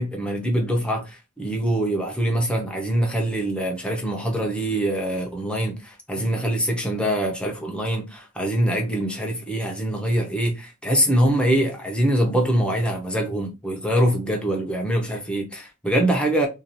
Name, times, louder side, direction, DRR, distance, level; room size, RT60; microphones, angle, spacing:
voice 1, 0.0-16.5, right 1 dB, 5° left, 0.7 m, -24 dB
2.6 x 2.4 x 2.9 m
head